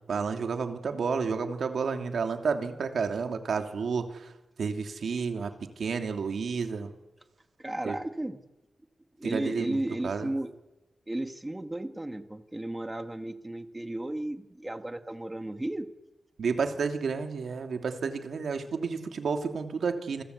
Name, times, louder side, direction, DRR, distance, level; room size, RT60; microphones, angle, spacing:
voice 1, 0.1-4.3 4.6-6.9 7.8-8.0 9.2-10.3 16.4-20.2, right 5 dB, 75° right, 5 dB, 2.8 m, -31 dB
voice 2, 7.6-8.4 9.2-10.5 11.1-15.9, right 1 dB, 15° right, 8 dB, 1.6 m, -34 dB
29.0 x 23.0 x 8.3 m, 1.0 s
wide cardioid pair, 140°, 0 cm